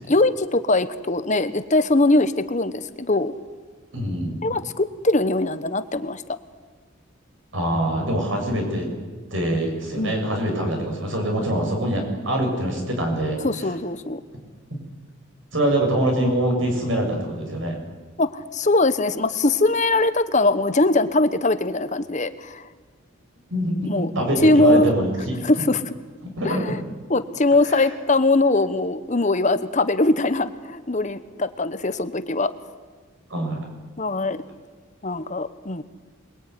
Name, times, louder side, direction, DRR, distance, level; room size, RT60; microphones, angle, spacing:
voice 1, 0.1-3.3 4.4-6.2 10.0-10.2 13.4-14.2 18.2-22.6 23.8-24.1 24.4-24.9 25.4-25.9 26.4-26.8 27.1-32.5 34.0-34.4 35.0-35.8, left 2 dB, 35° left, 11 dB, 1.1 m, -21 dB
voice 2, 3.9-4.4 7.5-8.9 9.3-13.4 15.5-17.8 23.5-25.4 26.4-26.6 33.3-33.6, right 1 dB, 70° right, 2 dB, 7.7 m, -24 dB
27.0 x 21.5 x 9.8 m, 1.4 s
head